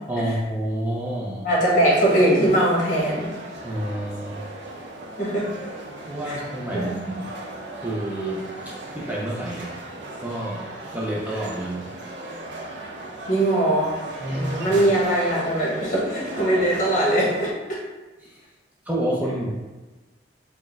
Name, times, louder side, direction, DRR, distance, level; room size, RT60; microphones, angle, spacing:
voice 1, 0.1-1.5 3.6-4.4 6.1-7.3 7.8-9.7 10.2-10.7 10.9-11.9 14.2-14.8 18.2-18.4 18.9-19.5, right 1 dB, 10° right, -5 dB, 0.4 m, -29 dB
voice 2, 1.4-3.3 5.2-5.5 6.2-6.4 6.7-6.9 13.3-13.9 14.3-17.8, right 1 dB, 45° left, -5 dB, 1.1 m, -21 dB
sound 1, 1.7-17.5, right 1 dB, 70° right, 0.5 m, -37 dB
4.2 x 2.1 x 3.5 m, 1.2 s
head